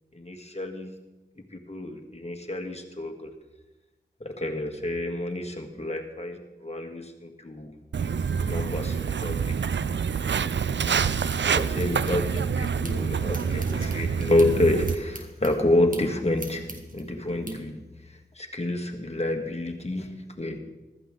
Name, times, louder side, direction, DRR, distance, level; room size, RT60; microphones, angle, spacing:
voice 1, 0.1-0.9 1.5-3.3 4.2-7.7 8.5-9.4 11.5-16.7 16.9-17.8 18.4-20.6, left 1 dB, 35° left, 4 dB, 1.9 m, -28 dB
Walk footsteps, 7.9-15.0, right 6 dB, 70° right, 0.4 m, -27 dB
sound 1, 11.8-13.0 13.3-17.5, right 1 dB, 45° right, 2.0 m, -42 dB
15.0 x 13.5 x 3.8 m, 1.1 s
wide cardioid pair, 40°, 19 cm